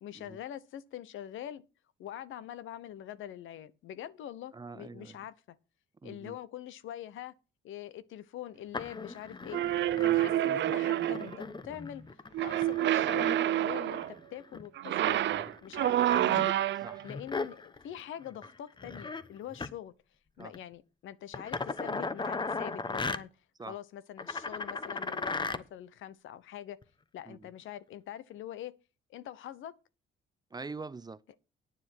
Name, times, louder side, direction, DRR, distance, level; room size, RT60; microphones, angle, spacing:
voice 1, 0.0-1.6 2.0-5.6 6.0-7.3 7.6-14.0 14.3-15.2 15.6-16.6 17.0-19.9 20.4-23.3 23.6-26.8 27.1-28.7 29.1-29.7, left 11 dB, 80° left, 1.0 m, -44 dB
voice 2, 4.5-5.2 6.0-6.4 9.9-10.2 16.8-17.1 20.4-20.5 23.6-23.8 27.3-27.4 30.5-31.4, right 4 dB, 20° right, 0.6 m, -44 dB
sound 1, 8.7-14.7 15.0-18.0 18.3-18.5 18.8-19.3 19.5-19.7 20.4-20.6 21.3-23.2 24.2-25.6 26.8-26.9, left 3 dB, 25° left, 1.0 m, -38 dB
sound 2, 9.5-11.4 12.3-14.1 14.8-17.0, right 13 dB, 65° right, 0.5 m, -28 dB
9.8 x 7.1 x 6.2 m
cardioid pair, 90°, 20 cm